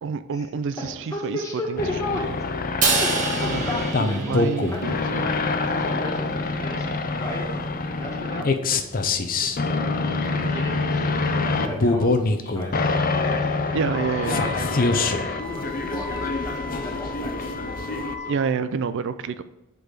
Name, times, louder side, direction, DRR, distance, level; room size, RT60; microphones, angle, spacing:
voice 1, 0.0-1.4 1.7-1.8 2.1-2.2 3.4-3.7 4.0-5.3 13.7-14.5 18.3-19.4, right 5 dB, 60° right, 12 dB, 0.4 m, -28 dB
voice 2, 0.8-2.3 3.0-4.4 4.7-8.5 9.4-17.7 18.2-18.4, left 1 dB, 15° left, -2 dB, 2.0 m, -35 dB
sound 1, 1.8-18.2, left 3 dB, 40° left, 0.6 m, -25 dB
Crash cymbal, 2.8-5.2, right 4 dB, 35° right, 1.5 m, -26 dB
Wind instrument woodwind instrument, 13.9-18.4, left 4 dB, 70° left, 1.5 m, -37 dB
8.0 x 4.0 x 6.6 m, 0.94 s
head